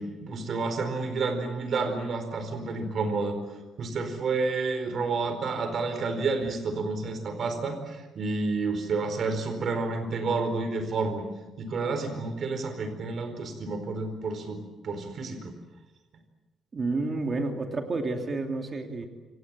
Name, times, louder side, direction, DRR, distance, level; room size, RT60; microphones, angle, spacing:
voice 1, 0.0-3.4 3.8-11.2 11.6-14.6 14.8-15.5, right 3 dB, 45° right, 7 dB, 4.5 m, -30 dB
voice 2, 16.7-19.1, right 3 dB, 30° right, 3 dB, 2.8 m, -30 dB
28.5 x 25.5 x 7.6 m, 1.2 s
cardioid pair, 155°, 0 cm